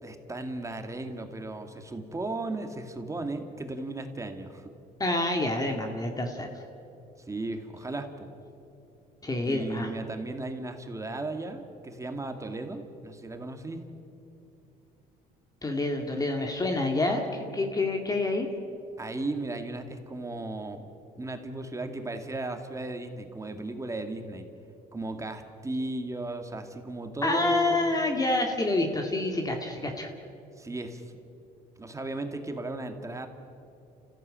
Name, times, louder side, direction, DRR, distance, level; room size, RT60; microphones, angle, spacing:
voice 1, 0.0-4.7 7.3-8.3 9.4-13.8 19.0-20.8 21.2-24.5 24.9-27.8 30.6-31.0 31.8-33.3, right 2 dB, 20° right, 6 dB, 2.1 m, -35 dB
voice 2, 5.0-6.5 9.2-9.9 15.6-18.5 27.2-30.1, left 2 dB, 20° left, 3 dB, 2.1 m, -27 dB
30.0 x 15.0 x 8.8 m, 2.8 s
cardioid pair, 110°, 17 cm